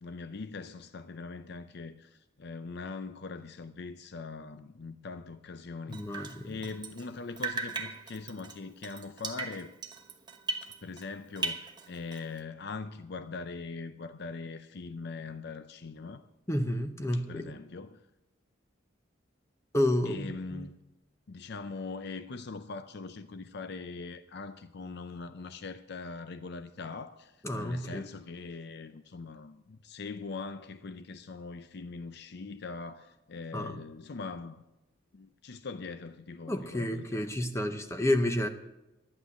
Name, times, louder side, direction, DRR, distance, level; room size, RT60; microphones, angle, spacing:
voice 1, 0.0-9.7 10.8-16.2 17.1-18.0 20.0-20.8 21.3-34.6 35.1-37.3, left 4 dB, 55° left, 0.5 m, -42 dB
voice 2, 5.9-6.6 16.5-17.5 19.7-20.7 27.4-28.0 33.5-33.8 36.5-38.5, left 1 dB, 15° left, 0.7 m, -30 dB
Drip, 5.9-7.1 7.4-11.1 11.4-12.4, right 3 dB, 20° right, 1.0 m, -38 dB
11.5 x 9.7 x 7.1 m
head